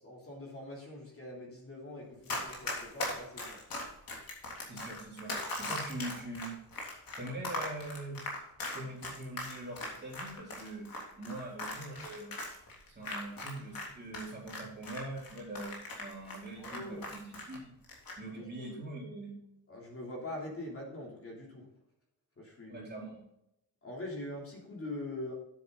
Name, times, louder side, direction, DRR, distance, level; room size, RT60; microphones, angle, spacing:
voice 1, 0.0-3.6 11.2-11.4 13.1-13.2 16.6-17.1 18.3-18.8 19.7-21.7 22.4-22.9 23.8-25.3, left 1 dB, 35° left, -2 dB, 3.2 m, -43 dB
Run, 2.3-13.9 14.1-17.6 17.8-18.2, left 2 dB, 60° left, 3.4 m, -39 dB
voice 2, 4.7-6.5 7.2-8.2 8.7-10.9 11.2-12.3 12.9-17.7 18.2-19.4 22.7-23.2, right 1 dB, 25° right, -4 dB, 3.8 m, -43 dB
9.6 x 8.4 x 4.0 m, 0.81 s
wide cardioid pair, 160°, 38 cm